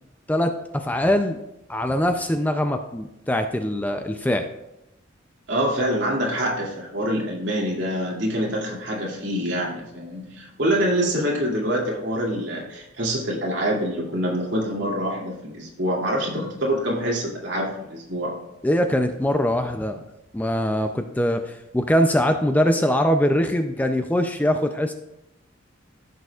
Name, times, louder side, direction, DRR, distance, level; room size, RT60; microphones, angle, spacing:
voice 1, 0.3-1.4 1.7-4.5 18.6-20.0 20.3-24.9, equal, 10° left, 7 dB, 0.4 m, -22 dB
voice 2, 5.5-18.4, equal, 60° right, -3 dB, 2.6 m, -25 dB
15.0 x 6.7 x 2.4 m, 0.87 s
head